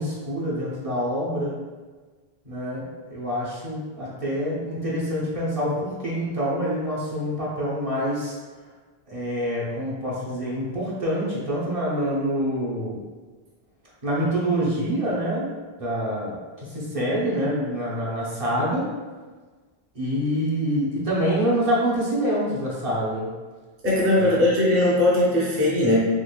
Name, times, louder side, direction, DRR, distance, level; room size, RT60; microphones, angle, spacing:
voice 1, 0.0-1.6 2.5-8.4 9.1-13.0 14.0-15.5 15.8-18.9 19.9-23.3 24.2-24.4, equal, 35° right, -7 dB, 0.8 m, -26 dB
voice 2, 23.8-26.0, left 1 dB, 20° right, -6 dB, 0.5 m, -19 dB
3.8 x 3.0 x 2.2 m, 1.4 s
omnidirectional pair, 1.1 m